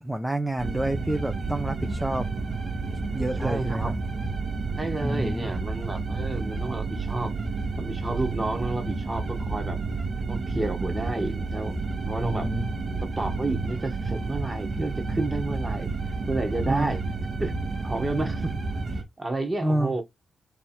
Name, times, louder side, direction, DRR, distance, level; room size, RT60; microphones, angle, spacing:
voice 1, 0.0-2.3 3.1-4.0 5.0-5.5 12.2-12.7 16.7-16.9 19.6-20.0, right 1 dB, 10° right, 0.6 m, -28 dB
sound 1, 0.6-19.0, right 3 dB, 55° right, 1.7 m, -30 dB
voice 2, 3.4-3.9 4.8-7.3 7.8-9.8 10.3-12.5 13.0-15.9 16.3-17.0 17.4-17.6 17.8-18.6 19.2-20.0, right 2 dB, 25° right, 1.7 m, -31 dB
3.4 x 3.0 x 4.4 m
supercardioid pair, 45°, 0 cm